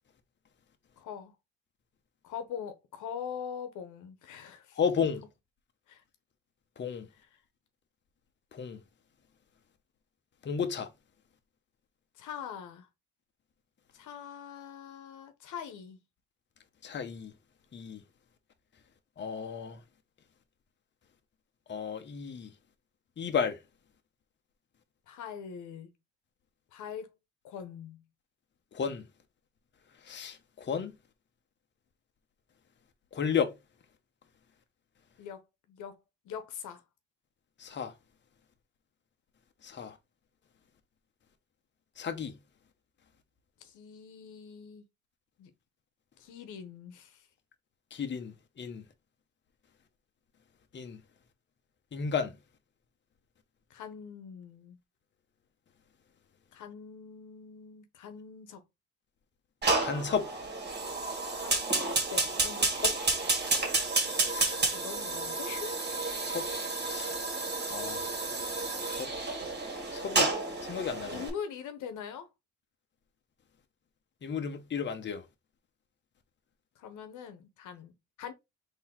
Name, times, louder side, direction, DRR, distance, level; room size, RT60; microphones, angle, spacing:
voice 1, 1.0-1.3 2.2-4.8 5.9-6.0 7.2-7.3 12.2-12.9 13.9-16.0 25.1-25.9 26.7-27.1 27.4-28.0 35.2-36.0 36.2-36.8 43.6-44.8 45.4-45.5 46.2-47.3 53.7-54.8 56.5-58.6 61.3-61.8 62.1-62.8 64.5-65.9 66.8-67.3 69.4-69.6 71.1-72.3 76.8-78.3, left 7 dB, 85° left, 0.9 m, -43 dB
voice 2, 4.8-5.2 6.8-7.0 8.5-8.8 10.4-10.9 16.8-17.3 17.7-18.0 19.2-19.8 21.7-22.5 23.2-23.6 28.7-29.0 30.1-30.9 33.1-33.5 37.6-37.9 39.6-39.9 42.0-42.3 47.9-48.3 48.6-48.8 50.7-51.0 51.9-52.3 59.8-60.3 62.8-62.9 64.3-64.5 66.2-66.4 66.9-67.1 67.7-68.1 68.9-69.1 69.9-70.3 70.6-71.2 74.2-75.2, left 6 dB, 35° left, 0.8 m, -33 dB
Fire, 59.6-71.3, right 3 dB, 35° right, 1.9 m, -31 dB
3.8 x 2.9 x 4.3 m
cardioid pair, 90°, 30 cm